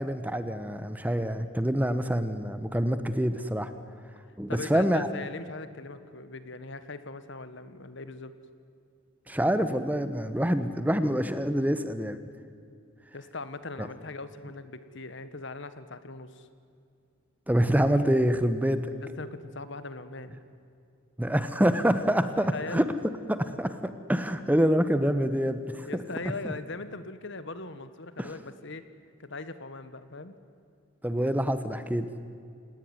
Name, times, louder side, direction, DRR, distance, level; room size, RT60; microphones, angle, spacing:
voice 1, 0.0-3.7 4.4-5.1 9.3-12.2 13.8-13.9 17.5-18.9 21.2-22.9 23.3-25.9 28.2-28.3 31.0-32.1, equal, 10° right, 11 dB, 1.1 m, -26 dB
voice 2, 4.5-8.3 13.1-16.5 19.0-20.4 22.3-22.8 25.8-28.8 29.2-30.4, left 3 dB, 60° left, 12 dB, 1.5 m, -40 dB
29.5 x 18.5 x 9.7 m, 2.5 s
head